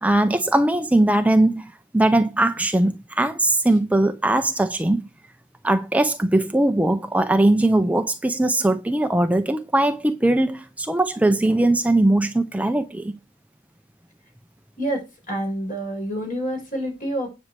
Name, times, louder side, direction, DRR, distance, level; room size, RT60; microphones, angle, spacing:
voice 1, 0.0-5.1 5.6-13.2, right 1 dB, 5° right, 0.5 m, -20 dB
voice 2, 14.8-17.3, right 1 dB, 45° left, 6.4 m, -28 dB
10.0 x 6.3 x 4.7 m
head